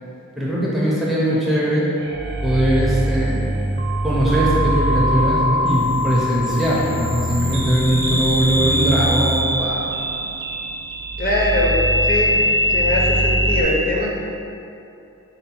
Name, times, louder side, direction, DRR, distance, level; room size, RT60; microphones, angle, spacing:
voice 1, 0.4-1.9 2.4-3.6 4.0-9.9, right 1 dB, ahead, -7 dB, 0.4 m, -20 dB
sound 1, 2.0-13.6, equal, 60° right, 0.5 m, -21 dB
voice 2, 11.2-12.4 12.7-14.2, left 1 dB, 45° left, -4 dB, 0.6 m, -22 dB
3.8 x 2.1 x 4.2 m, 2.7 s
head